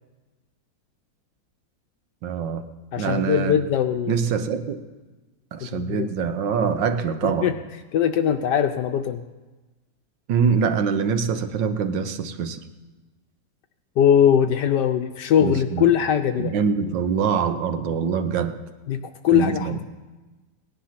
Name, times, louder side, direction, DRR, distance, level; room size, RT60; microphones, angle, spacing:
voice 1, 2.2-2.6 3.0-3.6 4.1-4.8 5.5-7.5 10.3-12.6 15.4-15.9 16.4-18.6 19.3-19.8, right 6 dB, 75° right, 9 dB, 1.6 m, -24 dB
voice 2, 2.9-4.2 5.7-6.1 7.4-7.5 7.9-9.2 14.0-16.5 18.9-19.0 19.2-19.8, left 9 dB, 70° left, 7 dB, 1.2 m, -20 dB
17.5 x 10.5 x 5.8 m, 1.2 s
omnidirectional pair, 2.0 m